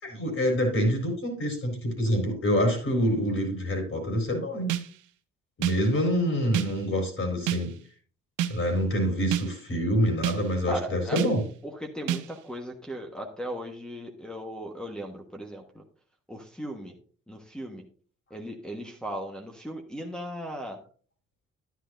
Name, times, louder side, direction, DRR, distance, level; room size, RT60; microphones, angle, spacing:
voice 1, 0.0-4.7 5.6-7.7 8.5-11.4, equal, 45° left, 1 dB, 4.2 m, -26 dB
sound 1, 4.7-5.1 5.6-6.0 6.5-6.9 7.5-7.8 8.4-8.7 9.3-9.7 10.2-10.6 11.2-11.5 12.1-12.4, right 11 dB, 85° right, 0.8 m, -30 dB
voice 2, 10.7-11.2 11.6-15.8 16.3-17.0 17.3-17.8 18.3-20.8, right 1 dB, 5° left, -1 dB, 1.3 m, -37 dB
11.5 x 9.8 x 2.6 m, 0.42 s
cardioid pair, 90°, 30 cm